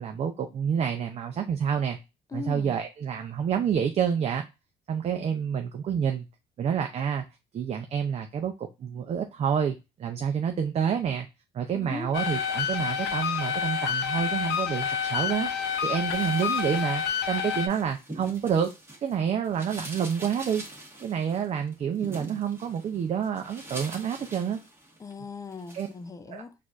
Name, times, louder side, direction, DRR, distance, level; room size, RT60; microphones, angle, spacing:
voice 1, 0.0-2.0 2.3-4.4 4.9-6.3 6.6-7.2 7.5-11.3 11.5-15.5 15.8-18.7 19.0-20.6 21.0-24.6 25.7-25.9 26.3-26.4, right 7 dB, 40° right, 0.5 m, -28 dB
voice 2, 2.3-2.8 11.7-12.1 25.0-26.5, left 4 dB, 20° left, 0.5 m, -38 dB
sound 1, 12.1-17.7, left 7 dB, 80° left, 0.6 m, -28 dB
sound 2, 16.0-19.1 19.4-25.1 25.5-25.9, right 1 dB, 15° right, 1.4 m, -44 dB
4.3 x 2.5 x 2.4 m
cardioid pair, 110°, 17 cm